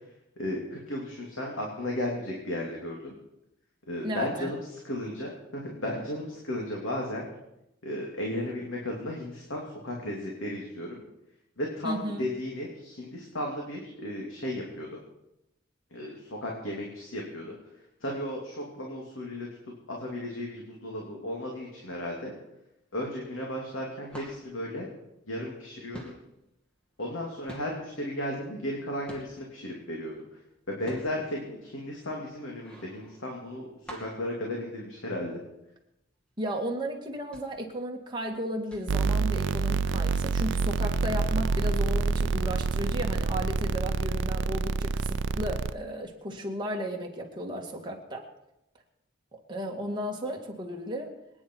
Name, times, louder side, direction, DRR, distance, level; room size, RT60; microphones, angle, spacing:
voice 1, 0.4-3.1 3.8-7.3 7.8-11.0 11.6-15.0 15.9-17.6 18.0-19.5 19.9-22.3 22.9-24.9 25.3-26.1 27.0-30.2 30.7-33.7 34.0-35.4, left 1 dB, 75° left, -2 dB, 2.8 m, -35 dB
voice 2, 4.0-4.5 11.8-12.2 36.4-48.3 49.3-51.1, equal, 20° right, 0 dB, 2.2 m, -34 dB
sound 1, 23.9-25.6 25.9-29.6 30.1-35.4 35.7-35.8 36.2-36.4 37.0-39.8 40.1-40.6 41.3-41.4, right 1 dB, 5° left, 2.5 m, -48 dB
sound 2, 38.9-45.7, right 4 dB, 65° right, 0.5 m, -27 dB
24.5 x 9.8 x 4.7 m, 0.87 s
head